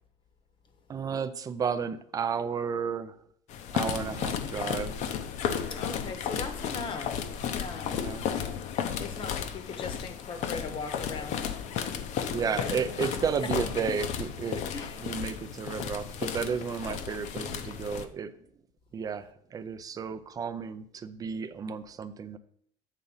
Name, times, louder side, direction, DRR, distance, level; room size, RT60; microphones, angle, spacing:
voice 1, 0.9-3.2 3.7-4.9 7.9-8.3 12.3-14.6 15.0-18.3 18.9-22.4, right 6 dB, 25° right, 0.5 m, -32 dB
sound 1, 3.5-18.1, left 8 dB, 55° left, 0.7 m, -34 dB
voice 2, 4.1-4.4 5.7-7.2 7.5-8.0 9.0-11.6 12.4-12.8 14.7-15.0, left 4 dB, 35° left, 0.9 m, -39 dB
8.2 x 3.8 x 5.6 m
cardioid pair, 155°, 15 cm